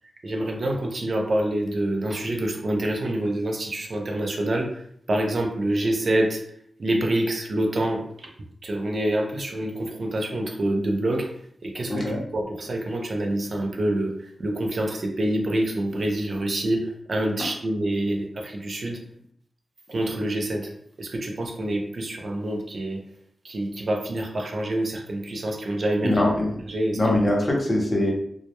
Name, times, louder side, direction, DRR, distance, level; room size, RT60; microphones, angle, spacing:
voice 1, 0.2-6.4 6.8-8.3 8.6-11.3 11.6-19.0 19.9-20.7 21.0-23.0 23.4-26.2 26.7-27.0, right 1 dB, 55° right, 2 dB, 0.4 m, -26 dB
voice 2, 11.9-12.2 26.0-26.5 26.9-28.1, left 1 dB, 30° left, -2 dB, 0.7 m, -22 dB
2.1 x 2.1 x 2.8 m, 0.67 s
wide cardioid pair, 105°, 0 cm